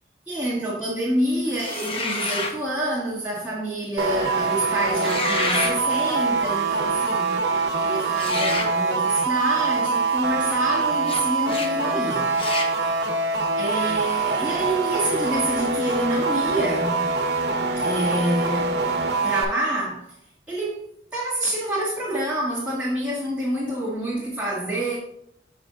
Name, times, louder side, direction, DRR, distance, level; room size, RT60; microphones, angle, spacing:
voice 1, 0.3-7.4 7.7-12.4 13.6-17.1 17.8-18.8 19.2-20.1 20.5-20.8 21.1-25.0, right 1 dB, 10° right, 1.2 m, -27 dB
sound 1, 1.5-2.6 4.9-5.8 8.1-8.7 11.0-11.2 11.5-11.7 12.3-12.7, left 2 dB, 30° left, 0.8 m, -28 dB
sound 2, 4.0-19.4, right 3 dB, 70° right, 1.0 m, -24 dB
6.6 x 4.9 x 3.7 m
head